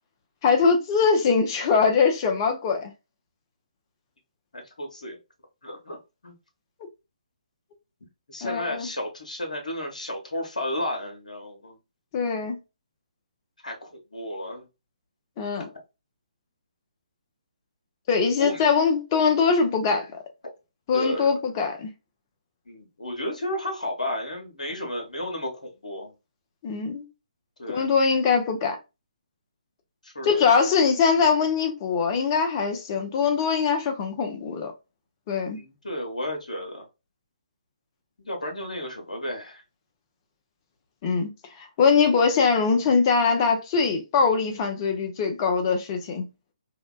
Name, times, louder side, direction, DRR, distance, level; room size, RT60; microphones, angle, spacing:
voice 1, 0.4-2.9 8.4-8.9 12.1-12.6 15.4-15.7 18.1-20.2 20.9-21.9 26.6-27.1 27.7-28.8 30.2-34.7 35.3-35.6 41.0-41.3 41.6-46.3, left 5 dB, 30° left, 0.6 m, -22 dB
voice 2, 4.5-5.2 5.6-6.0 6.2-6.3 8.3-11.8 13.6-14.6 18.4-18.6 20.9-21.3 22.7-26.1 27.6-27.9 30.0-30.5 35.5-36.8 38.2-39.6, left 1 dB, 75° left, 0.9 m, -33 dB
2.7 x 2.1 x 2.3 m
figure-of-eight pair, 140°, 4 cm